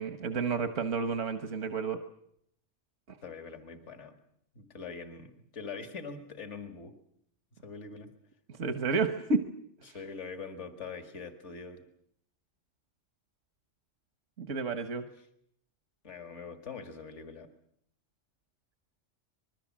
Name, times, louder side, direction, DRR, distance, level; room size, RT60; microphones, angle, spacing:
voice 1, 0.0-2.0 3.1-3.2 8.5-9.4 9.9-10.0 14.4-15.1, right 4 dB, 75° right, 9 dB, 1.6 m, -31 dB
voice 2, 3.2-4.2 4.6-6.9 7.5-8.1 9.8-11.8 16.0-17.5, left 5 dB, 70° left, 8 dB, 2.3 m, -43 dB
26.0 x 21.0 x 7.4 m, 0.70 s
omnidirectional pair, 1.3 m